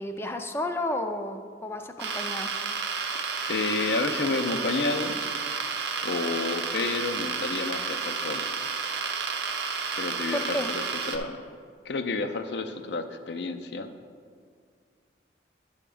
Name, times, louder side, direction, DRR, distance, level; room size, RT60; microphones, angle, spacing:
voice 1, 0.0-2.5 10.3-10.7, left 1 dB, 15° left, 6 dB, 0.4 m, -32 dB
sound 1, 2.0-11.2, right 5 dB, 65° right, 0.7 m, -31 dB
voice 2, 3.1-5.2 6.0-8.5 10.0-11.4 11.8-13.9, left 3 dB, 70° left, 9 dB, 0.5 m, -30 dB
9.8 x 3.6 x 6.9 m, 2.1 s
head